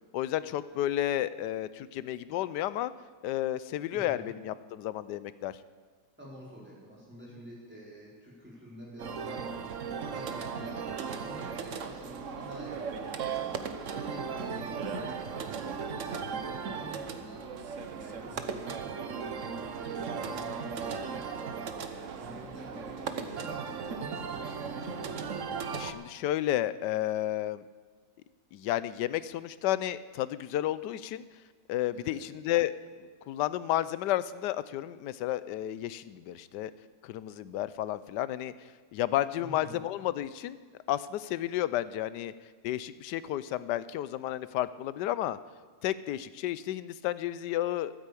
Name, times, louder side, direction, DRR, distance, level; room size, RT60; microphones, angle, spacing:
voice 1, 0.1-2.9 3.2-5.6 25.7-27.6 28.5-31.2 31.7-32.7 33.3-36.7 37.0-40.6 40.9-42.3 42.6-45.4 45.8-47.9, left 13 dB, 85° left, 16 dB, 1.2 m, -32 dB
voice 2, 3.9-4.3 6.2-9.5 9.8-13.6 13.9-17.5 17.9-21.3 21.7-24.5 31.9-32.3 39.4-39.8, equal, 5° right, -6 dB, 4.4 m, -48 dB
sound 1, 9.0-25.9, right 6 dB, 55° right, 1.1 m, -37 dB
13.0 x 9.2 x 8.4 m, 1.4 s
omnidirectional pair, 1.8 m